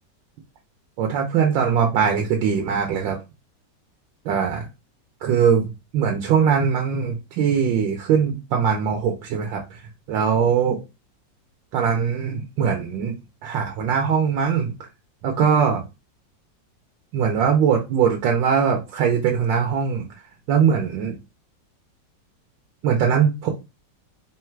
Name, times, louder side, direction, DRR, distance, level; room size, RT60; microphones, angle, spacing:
voice 1, 1.0-3.2 4.2-4.7 5.2-5.7 5.9-9.8 10.1-10.8 11.7-13.1 13.4-14.7 15.2-15.8 17.1-20.1 20.5-21.2 22.8-23.5, right 7 dB, 85° right, 2 dB, 1.4 m, -21 dB
3.6 x 2.4 x 4.4 m, 0.26 s
omnidirectional pair, 2.0 m